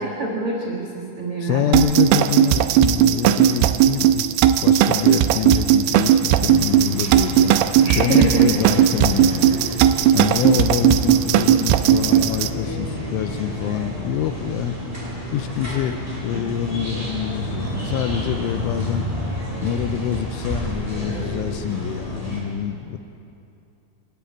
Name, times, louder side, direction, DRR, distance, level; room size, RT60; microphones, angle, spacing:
voice 1, 0.0-1.7 7.8-8.9, right 2 dB, 60° right, -1 dB, 1.4 m, -26 dB
voice 2, 1.4-4.3 4.6-9.6 10.1-14.8 15.3-19.1 19.6-23.0, left 10 dB, 85° left, 8 dB, 3.2 m, -26 dB
sound 1, 1.7-12.5, right 11 dB, 90° right, 3.3 m, -17 dB
sound 2, 6.4-22.4, equal, 10° right, 4.4 m, -30 dB
28.5 x 12.0 x 8.7 m, 2.6 s
omnidirectional pair, 5.6 m